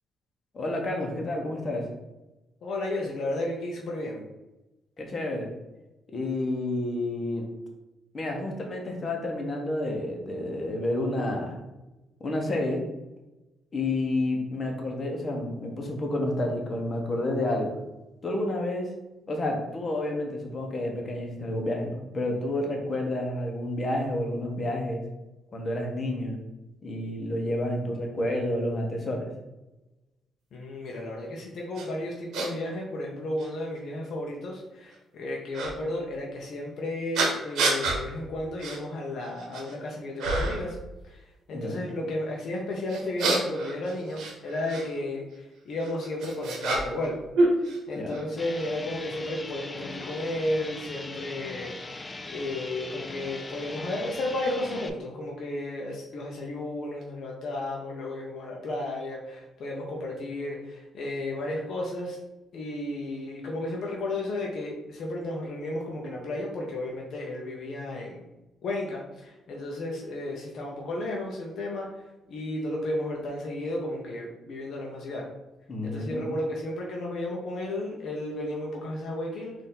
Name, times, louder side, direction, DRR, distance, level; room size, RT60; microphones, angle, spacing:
voice 1, 0.5-1.9 5.0-5.5 6.1-7.4 8.1-11.6 12.2-12.8 13.7-17.8 18.2-18.9 19.3-25.0 25.5-26.4 26.8-29.3 41.5-41.8 48.0-48.2 75.7-76.3, left 1 dB, 40° left, 1 dB, 1.0 m, -30 dB
voice 2, 2.6-4.2 30.5-40.8 41.0-47.2 47.6-51.8 52.3-62.2 62.5-68.2 68.6-71.9 72.3-75.3 75.8-79.5, left 1 dB, 65° left, -1 dB, 0.7 m, -33 dB
sound 1, 31.8-31.9 32.3-32.5 33.4-33.5 35.5-35.7 37.1-38.0 38.6-38.8 39.2-39.7 40.2-40.7 42.9-44.9 45.8-47.1 47.3-48.2, right 2 dB, 80° right, 0.9 m, -27 dB
sound 2, 48.4-54.9, left 2 dB, 20° left, 0.4 m, -40 dB
4.1 x 2.6 x 3.8 m, 1.0 s
cardioid pair, 90°, 0 cm